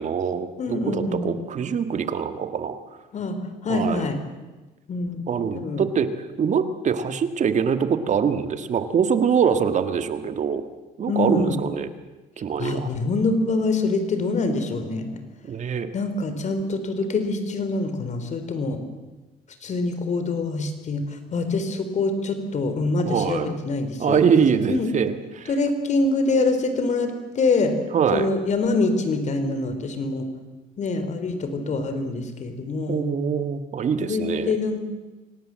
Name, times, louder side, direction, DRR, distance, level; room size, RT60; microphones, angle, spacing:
voice 1, 0.0-2.8 3.7-4.1 5.3-6.1 6.4-10.6 11.0-11.9 12.4-12.9 15.4-15.9 23.1-23.5 24.0-25.5 27.9-28.3 32.9-34.5, right 7 dB, 45° right, 9 dB, 1.9 m, -23 dB
voice 2, 0.6-1.3 3.1-4.2 4.9-5.2 5.5-5.8 11.1-11.6 12.6-15.2 15.9-18.8 19.6-21.0 21.3-24.2 24.7-24.9 25.5-27.7 28.1-30.3 30.8-33.0 34.0-34.8, left 3 dB, 45° left, 8 dB, 3.9 m, -25 dB
25.5 x 18.0 x 7.7 m, 1.2 s
cardioid pair, 110°, 17 cm